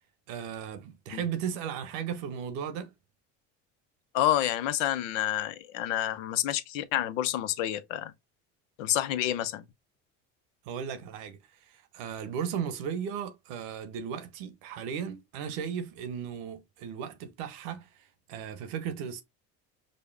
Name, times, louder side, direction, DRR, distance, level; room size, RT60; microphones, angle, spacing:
voice 1, 0.3-2.9 10.6-19.2, right 8 dB, 80° right, 0.9 m, -36 dB
voice 2, 4.1-8.1 8.8-9.6, left 13 dB, 90° left, 0.6 m, -29 dB
5.3 x 2.1 x 3.3 m
supercardioid pair, 80°, 36 cm